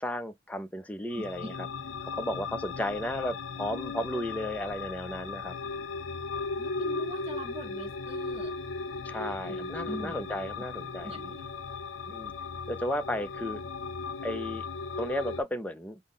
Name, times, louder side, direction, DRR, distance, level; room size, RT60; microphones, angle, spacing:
voice 1, 0.0-1.7 2.0-5.5 9.0-11.1 12.1-12.3 12.7-13.6 14.2-14.7 15.0-16.0, left 1 dB, 10° left, 0.4 m, -34 dB
sound 1, 1.1-15.4, left 4 dB, 80° left, 0.5 m, -37 dB
voice 2, 6.6-8.5 9.5-10.1 11.0-11.5, right 1 dB, 30° right, 0.7 m, -42 dB
5.5 x 2.0 x 3.7 m
head